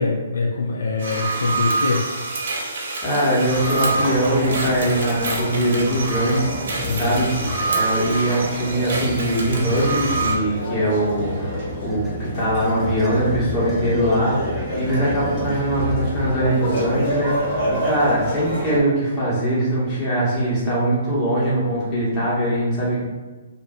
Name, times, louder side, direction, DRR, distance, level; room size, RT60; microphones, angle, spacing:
voice 1, 0.0-2.0 6.9-7.6, left 3 dB, 75° left, -1 dB, 0.3 m, -24 dB
sound 1, 1.0-10.4, right 3 dB, 65° right, 0.5 m, -27 dB
voice 2, 3.0-6.5 6.9-7.3 7.7-11.6 11.8-17.3 17.7-23.0, right 1 dB, 25° left, -8 dB, 1.2 m, -22 dB
sound 2, 3.4-18.8, equal, 45° left, 1.1 m, -29 dB
sound 3, 6.3-7.6 8.7-10.4 11.1-16.6, left 1 dB, 10° right, 0.5 m, -31 dB
2.6 x 2.5 x 2.3 m, 1.3 s
figure-of-eight pair, 130°, 0 cm